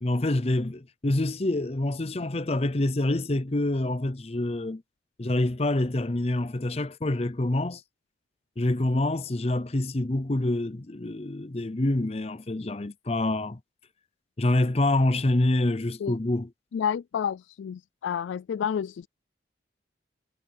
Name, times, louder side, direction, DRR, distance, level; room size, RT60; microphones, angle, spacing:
voice 1, 0.0-4.8 5.2-7.8 8.6-13.6 14.4-16.5, left 1 dB, 35° left, 0.7 m, -26 dB
voice 2, 16.7-19.1, left 8 dB, 80° left, 0.3 m, -30 dB
head